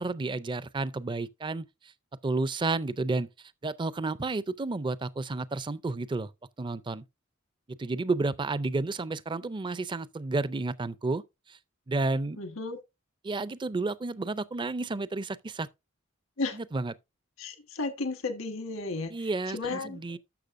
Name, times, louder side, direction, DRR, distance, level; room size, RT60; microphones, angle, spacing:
voice 1, 0.0-1.6 2.2-3.3 3.6-6.3 6.6-7.0 7.7-11.2 11.5-11.6 11.9-12.4 13.2-15.7 16.7-16.9 19.1-20.2, right 3 dB, 25° right, 0.4 m, -31 dB
voice 2, 12.4-12.8 16.4-16.6 17.4-20.0, left 3 dB, 85° left, 1.4 m, -34 dB
12.0 x 6.7 x 2.5 m
head